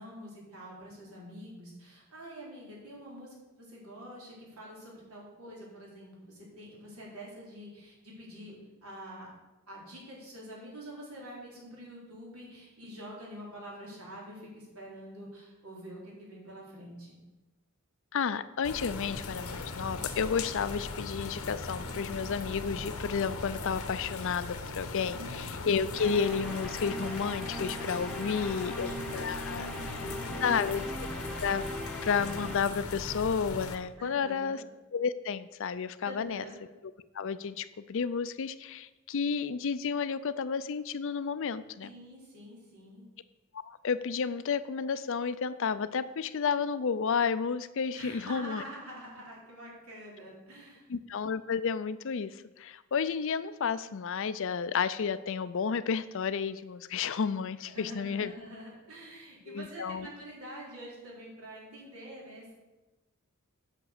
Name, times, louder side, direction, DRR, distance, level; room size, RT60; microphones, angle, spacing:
voice 1, 0.0-8.6 8.8-9.3 9.7-17.2 25.1-25.4 28.0-30.8 34.0-34.6 36.0-36.6 41.8-43.0 47.9-50.9 57.7-62.5, equal, 90° right, -4 dB, 3.8 m, -46 dB
voice 2, 18.1-29.7 30.4-30.8 31.4-31.7 32.0-34.6 34.9-36.4 37.1-41.9 43.7-48.6 50.9-58.3 59.5-60.1, left 6 dB, 60° left, 14 dB, 0.5 m, -31 dB
sound 1, 18.6-33.8, left 3 dB, 90° left, 1.1 m, -39 dB
sound 2, 25.9-32.6, equal, 5° left, 0.8 m, -40 dB
8.6 x 6.1 x 6.6 m, 1.1 s
head